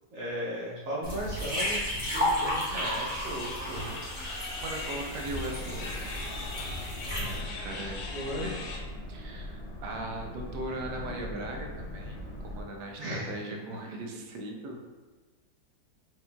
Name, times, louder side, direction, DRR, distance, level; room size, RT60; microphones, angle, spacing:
voice 1, 0.1-2.6 8.1-8.5 13.0-13.3 14.1-14.2, equal, 60° right, -5 dB, 1.1 m, -35 dB
sound 1, 1.0-7.4, equal, 5° right, 0.9 m, -33 dB
voice 2, 2.7-4.0 4.3-6.1 7.1-8.1 8.4-8.7 9.1-12.2 12.4-14.8, right 1 dB, 80° right, 1 dB, 1.2 m, -39 dB
sound 2, 3.3-8.8, left 3 dB, 85° left, 1.3 m, -40 dB
Boat Water vehicle, 5.1-12.6, left 1 dB, 65° left, 0.7 m, -41 dB
4.5 x 3.0 x 2.2 m, 1.3 s
omnidirectional pair, 1.8 m